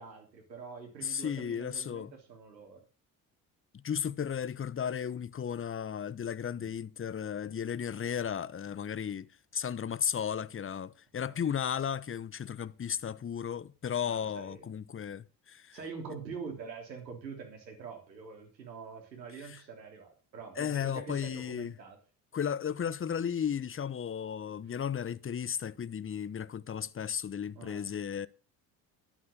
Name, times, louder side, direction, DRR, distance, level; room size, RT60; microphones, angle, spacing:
voice 1, 0.0-2.8 6.6-6.7 11.3-11.4 14.0-14.7 15.7-22.0 27.5-27.9, right 5 dB, 90° right, 3.4 m, -45 dB
voice 2, 1.0-2.1 3.8-15.8 19.4-19.6 20.6-21.7 22.3-28.3, left 8 dB, 25° left, 0.9 m, -34 dB
12.0 x 8.7 x 6.7 m
hypercardioid pair, 55°, 50 cm